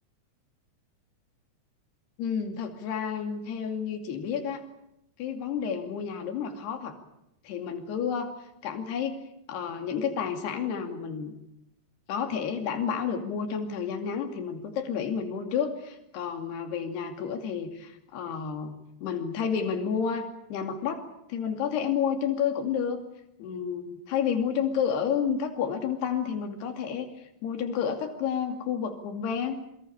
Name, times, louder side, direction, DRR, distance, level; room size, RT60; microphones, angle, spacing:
voice 1, 2.2-4.6 5.2-6.9 7.4-8.3 8.6-9.2 9.5-11.3 12.1-18.8 19.0-21.0 21.3-23.0 23.4-29.6, left 7 dB, 75° left, 5 dB, 4.5 m, -30 dB
27.5 x 22.5 x 7.0 m, 0.82 s
omnidirectional pair, 4.9 m